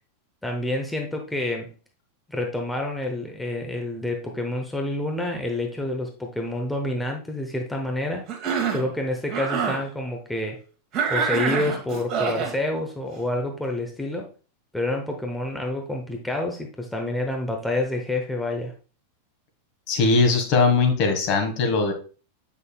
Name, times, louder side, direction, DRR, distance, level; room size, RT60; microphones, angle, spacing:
voice 1, 0.4-1.7 2.3-8.3 8.7-10.6 11.1-14.3 14.7-18.7, left 1 dB, 5° left, 2 dB, 0.9 m, -28 dB
Cough, 8.3-8.9 9.3-9.8 10.9-12.6, right 6 dB, 35° right, 1.5 m, -26 dB
voice 2, 19.9-21.9, left 4 dB, 45° left, 5 dB, 1.6 m, -20 dB
7.9 x 5.7 x 2.3 m, 0.37 s
figure-of-eight pair, 90°, 0 cm